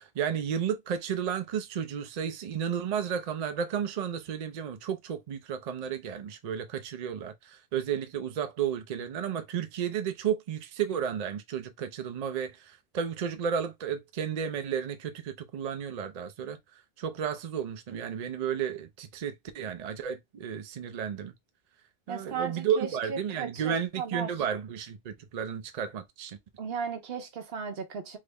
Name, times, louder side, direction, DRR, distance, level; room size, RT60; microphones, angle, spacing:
voice 1, 0.0-16.6 17.0-21.3 22.1-26.4, right 8 dB, 50° right, 0.5 m, -32 dB
voice 2, 22.1-24.3 26.6-28.2, right 6 dB, 70° right, 0.9 m, -36 dB
3.6 x 2.0 x 3.4 m
omnidirectional pair, 1.1 m